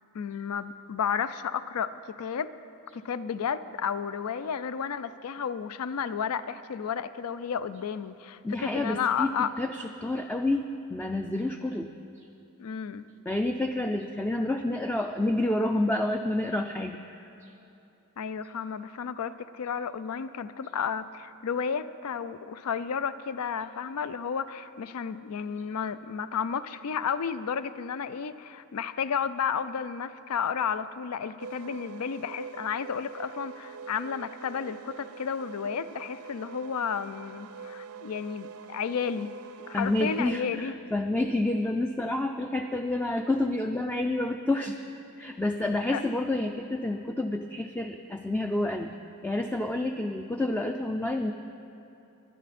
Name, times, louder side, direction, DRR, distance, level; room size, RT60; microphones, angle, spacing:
voice 1, 0.1-2.5 2.9-9.5 12.6-13.1 18.2-39.3 39.7-40.7 45.9-46.0, left 7 dB, 80° left, 14 dB, 0.4 m, -32 dB
voice 2, 8.4-11.9 13.3-17.0 17.4-17.5 39.7-44.8 45.2-49.0 49.2-51.3, left 1 dB, 10° left, 5 dB, 0.3 m, -29 dB
sound 1, 31.4-40.4, right 6 dB, 70° right, 0.5 m, -44 dB
21.0 x 11.5 x 4.2 m, 2.9 s
head